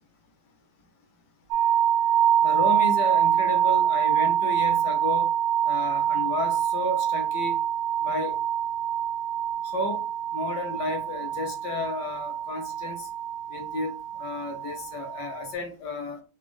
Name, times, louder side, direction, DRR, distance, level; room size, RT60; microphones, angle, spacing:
sound 1, 1.5-15.5, right 10 dB, 75° right, 1.0 m, -25 dB
voice 1, 2.4-5.3 5.6-7.6 8.0-8.3 9.6-10.1 10.3-13.1 13.5-16.2, left 2 dB, 60° left, 1.3 m, -32 dB
4.1 x 2.4 x 3.1 m
omnidirectional pair, 2.3 m